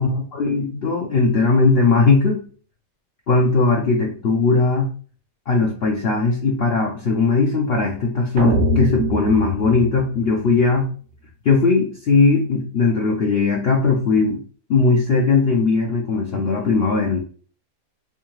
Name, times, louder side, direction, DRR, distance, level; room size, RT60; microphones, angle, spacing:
voice 1, 0.0-2.4 3.3-4.9 5.5-10.9 11.4-14.4 14.7-17.2, left 4 dB, 55° left, -1 dB, 0.7 m, -18 dB
sound 1, 8.4-10.7, right 1 dB, 75° right, 1.2 m, -23 dB
3.6 x 2.7 x 3.0 m, 0.41 s
omnidirectional pair, 1.5 m